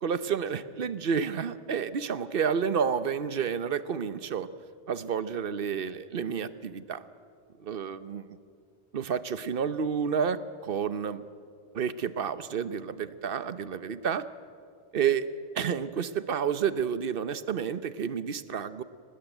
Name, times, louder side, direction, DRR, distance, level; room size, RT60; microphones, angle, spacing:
voice 1, 0.0-4.5 4.9-7.0 7.6-8.4 8.9-11.2 11.7-14.2 14.9-15.3 15.5-18.8, right 7 dB, 55° right, 13 dB, 1.0 m, -30 dB
24.0 x 19.0 x 9.1 m, 2.4 s
omnidirectional pair, 1.2 m